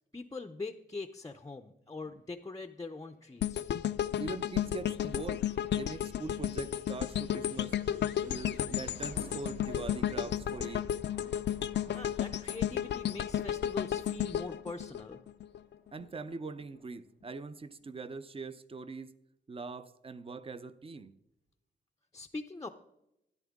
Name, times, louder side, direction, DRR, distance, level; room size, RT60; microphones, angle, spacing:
voice 1, 0.1-3.7 11.9-15.2 22.1-22.7, left 3 dB, 20° left, 0.5 m, -42 dB
sound 1, 2.6-16.1, right 2 dB, 45° right, 1.2 m, -56 dB
sound 2, 3.4-15.6 16.0-16.2, left 10 dB, 75° left, 0.4 m, -33 dB
voice 2, 4.2-7.8 8.2-10.9 15.9-19.1 19.5-21.1, right 3 dB, 30° right, 0.6 m, -42 dB
13.0 x 11.0 x 3.6 m
wide cardioid pair, 135°, 18 cm